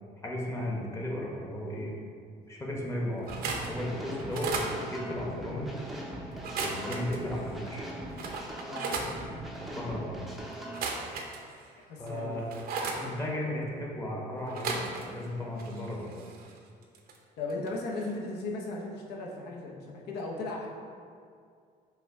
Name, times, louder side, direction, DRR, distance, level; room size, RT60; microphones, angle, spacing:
voice 1, 0.2-1.9 2.5-5.8 6.6-7.8 9.7-10.3 12.0-12.5 12.9-16.3, left 1 dB, 15° left, -3 dB, 0.8 m, -35 dB
sound 1, 3.2-3.7 4.2-4.7 6.3-7.2 7.7-7.8 8.2-9.1 10.6-11.7 12.1-13.0 14.4-15.3 15.5-17.2 17.5-17.7 18.0-18.1, right 4 dB, 60° right, 0.6 m, -35 dB
sound 2, 3.3-10.9, right 1 dB, ahead, 0.5 m, -41 dB
voice 2, 11.9-12.5 17.4-20.7, left 2 dB, 75° left, -1 dB, 0.8 m, -36 dB
5.7 x 2.2 x 3.5 m, 2.2 s
cardioid pair, 110°, 17 cm